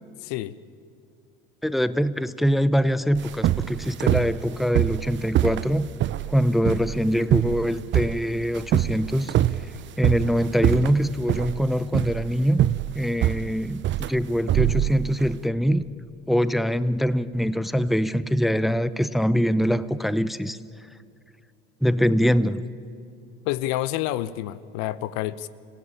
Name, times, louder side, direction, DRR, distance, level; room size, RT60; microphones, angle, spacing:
voice 1, 0.2-0.6 23.4-25.5, left 14 dB, 65° left, 17 dB, 0.9 m, -28 dB
voice 2, 1.6-5.9 6.3-9.3 10.0-12.6 12.9-15.8 16.3-20.6 21.8-22.6, equal, ahead, 15 dB, 0.7 m, -23 dB
sound 1, 3.2-15.4, right 13 dB, 40° right, 0.7 m, -25 dB
27.0 x 16.5 x 9.0 m, 2.4 s
hypercardioid pair, 75°, 29 cm